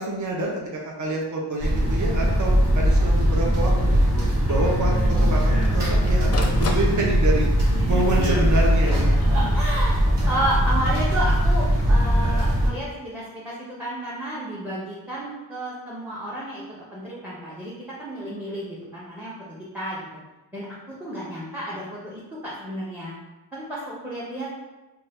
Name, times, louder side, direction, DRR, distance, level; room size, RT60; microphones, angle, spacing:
voice 1, 0.0-4.0 4.5-4.9 5.2-7.5 7.8-9.1, right 1 dB, 45° right, -2 dB, 0.7 m, -27 dB
sound 1, 1.6-12.7, equal, 80° right, 1.0 m, -20 dB
Printer, 2.8-2.9 3.3-3.4 3.7-3.8 4.5-4.7 5.3-7.5 8.3-9.8 11.4-11.9, left 3 dB, 40° left, 0.4 m, -37 dB
voice 2, 9.3-10.0 10.3-17.7 18.0-20.0 20.5-20.7 21.0-23.1 23.5-24.5, right 1 dB, 5° right, -7 dB, 0.6 m, -31 dB
2.6 x 2.3 x 3.3 m, 1.1 s
wide cardioid pair, 70°, 41 cm